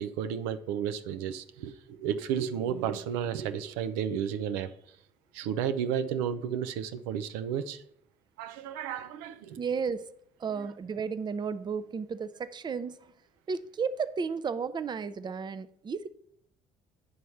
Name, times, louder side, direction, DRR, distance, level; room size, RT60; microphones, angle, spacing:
voice 1, 0.0-4.7 5.3-7.8 8.4-9.6, right 8 dB, 80° right, 0.5 m, -32 dB
voice 2, 9.6-10.1 10.4-13.1 13.5-16.1, right 5 dB, 30° right, 0.5 m, -33 dB
9.4 x 3.2 x 5.5 m
hypercardioid pair, 65°, 16 cm